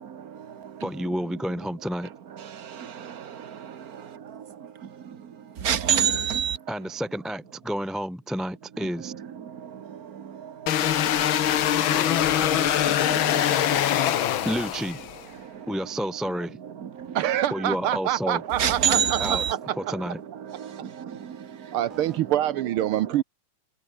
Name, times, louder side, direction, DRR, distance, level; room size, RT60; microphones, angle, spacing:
voice 1, 0.0-1.2 2.4-3.8 4.3-6.7 9.0-14.5 15.3-15.7 16.6-17.3 18.3-22.0 22.8-23.0, right 8 dB, 50° right, 1.1 m, -31 dB
voice 2, 0.8-2.1 6.7-9.1 14.4-15.0 15.7-16.6 17.5-18.4 19.2-19.4 19.8-20.2 21.9-22.2, equal, ahead, 1.6 m, -30 dB
sound 1, 10.7-15.2, left 11 dB, 60° left, 1.4 m, -23 dB
voice 3, 17.1-19.6 19.9-20.0 21.7-23.2, right 12 dB, 75° right, 1.2 m, -26 dB
omnidirectional pair, 3.3 m